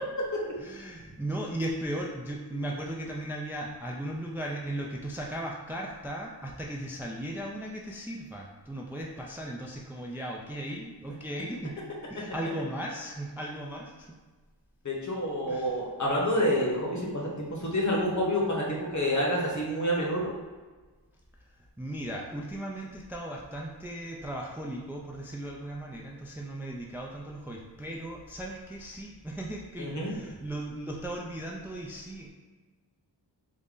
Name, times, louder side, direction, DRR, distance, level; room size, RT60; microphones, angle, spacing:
voice 1, 0.6-14.2 15.5-15.8 21.8-32.3, right 1 dB, 5° right, -1 dB, 0.4 m, -37 dB
voice 2, 14.8-20.3 29.8-30.1, equal, 45° left, -3 dB, 1.0 m, -28 dB
3.7 x 2.1 x 3.7 m, 1.3 s
wide cardioid pair, 55°, 41 cm